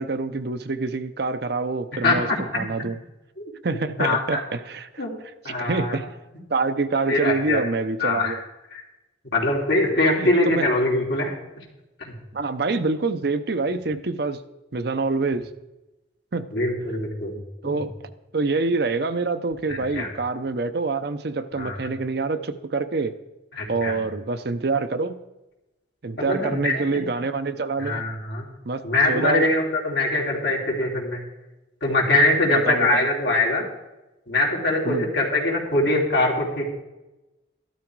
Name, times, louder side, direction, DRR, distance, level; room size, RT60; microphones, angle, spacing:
voice 1, 0.0-2.3 2.6-3.0 3.6-5.0 5.5-6.1 6.5-8.4 10.2-10.7 12.3-14.4 14.7-15.5 16.3-16.5 17.6-17.9 18.3-23.1 23.7-25.2 26.0-28.0 28.7-29.5 32.5-33.1 34.8-35.1, right 3 dB, 55° right, 10 dB, 0.6 m, -26 dB
voice 2, 2.0-2.4 3.4-3.5 4.0-4.4 5.0-5.1 5.4-6.0 7.1-7.6 8.0-8.4 8.7-8.8 9.3-11.3 12.0-12.1 16.5-17.4 17.6-17.8 19.7-20.1 21.6-21.9 23.6-24.0 26.2-27.0 27.8-28.5 28.8-31.2 31.8-33.7 34.3-36.7, left 2 dB, 60° left, -2 dB, 3.0 m, -23 dB
13.0 x 12.5 x 4.6 m, 1.0 s
head